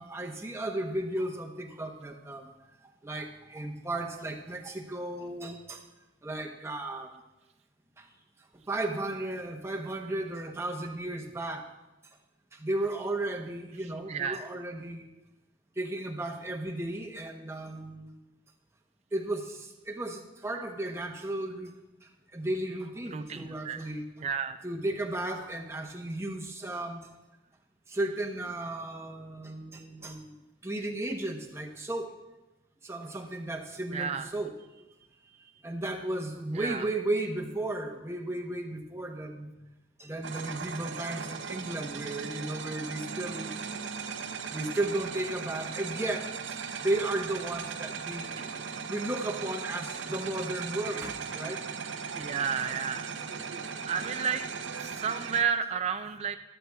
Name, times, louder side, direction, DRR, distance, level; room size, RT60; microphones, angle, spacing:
voice 1, 0.0-2.5 3.0-5.8 6.2-7.1 8.0-8.1 8.7-11.7 12.5-15.1 15.8-18.2 19.1-21.7 22.3-24.0 24.6-27.1 27.9-30.3 30.6-32.2 32.8-34.5 35.6-39.5 40.0-43.5 44.5-48.5 48.9-51.6, right 1 dB, 15° right, 2 dB, 0.8 m, -34 dB
voice 2, 14.1-14.4 23.1-23.9 24.2-24.6 33.9-34.3 36.5-36.8 52.2-53.1 53.9-54.5 54.8-56.4, right 6 dB, 35° right, 8 dB, 0.3 m, -31 dB
sound 1, 40.2-55.4, right 6 dB, 70° right, 0.6 m, -38 dB
13.5 x 12.5 x 2.3 m, 1.0 s
head